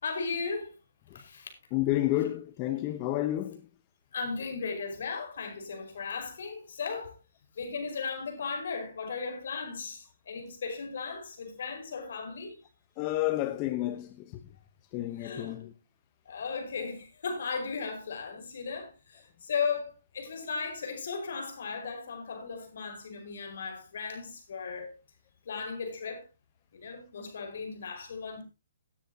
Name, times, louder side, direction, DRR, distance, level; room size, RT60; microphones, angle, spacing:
voice 1, 0.0-0.7 1.1-1.5 4.1-7.1 7.6-12.6 15.2-15.6 16.3-24.9 25.5-26.2 26.7-28.4, left 5 dB, 65° left, 5.2 m, -36 dB
voice 2, 1.7-3.7 13.0-14.4 14.9-15.7, left 15 dB, 30° left, 1.0 m, -30 dB
17.5 x 10.0 x 2.9 m
hypercardioid pair, 145°, 0 cm